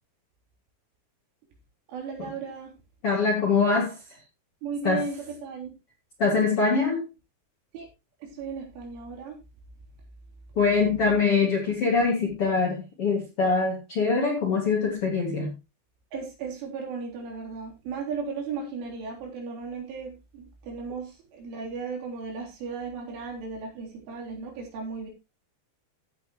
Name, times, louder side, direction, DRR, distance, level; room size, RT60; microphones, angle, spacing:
voice 1, 1.9-2.7 4.6-5.7 7.7-7.9 8.2-9.4 10.9-11.0 16.1-25.1, right 5 dB, 75° right, 0 dB, 5.9 m, -36 dB
voice 2, 3.0-4.0 4.8-5.0 6.2-7.1 10.6-15.5, left 4 dB, 45° left, 0 dB, 2.1 m, -23 dB
15.5 x 8.3 x 3.0 m, 0.26 s
omnidirectional pair, 5.7 m